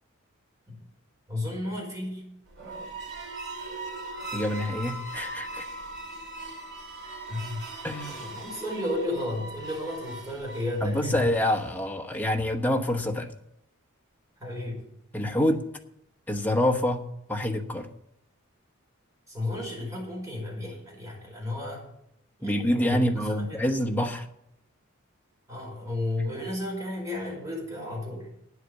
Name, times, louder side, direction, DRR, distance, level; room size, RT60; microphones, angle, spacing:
voice 1, 1.3-2.2 7.3-7.6 8.1-11.3 14.4-14.8 19.3-21.8 22.4-23.0 23.4-23.6 25.5-28.3, left 1 dB, 15° right, -3 dB, 5.1 m, -33 dB
sound 1, 2.5-11.9, right 2 dB, 60° right, 3.0 m, -40 dB
voice 2, 4.3-5.7 7.8-8.3 10.8-13.3 15.1-15.6 16.3-17.9 22.4-24.3, left 1 dB, 10° left, 4 dB, 1.0 m, -27 dB
9.4 x 8.2 x 8.0 m, 0.78 s
head